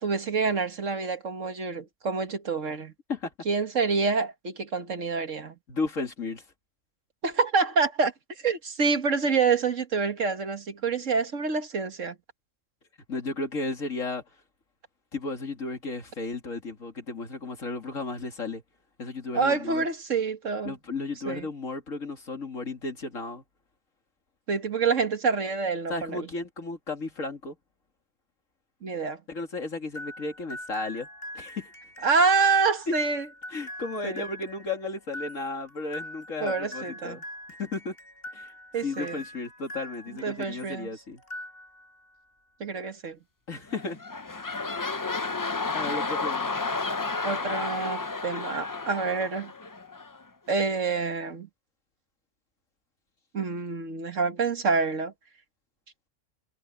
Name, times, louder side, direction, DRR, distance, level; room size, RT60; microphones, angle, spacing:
voice 1, 0.0-2.9 3.5-5.5 7.2-8.1 8.4-12.2 19.3-20.8 21.3-21.5 24.5-26.2 28.8-29.2 32.0-33.3 34.0-34.2 36.4-37.2 38.7-39.2 40.2-40.9 42.6-43.2 47.2-49.5 50.5-51.5 53.3-55.1, right 4 dB, 70° right, 2.1 m, -27 dB
voice 2, 5.7-6.4 13.1-14.2 15.1-18.6 19.0-19.8 20.6-23.4 25.9-27.6 29.3-31.1 31.3-31.7 33.5-37.2 37.6-38.0 38.3-38.5 38.8-41.2 43.5-44.0 45.7-46.5, left 3 dB, 80° left, 2.9 m, -34 dB
sound 1, 29.9-40.8 41.2-42.0, left 1 dB, 45° left, 6.4 m, -42 dB
sound 2, 43.7-50.2 50.8-50.9, left 3 dB, 25° left, 0.4 m, -32 dB
omnidirectional pair, 1.3 m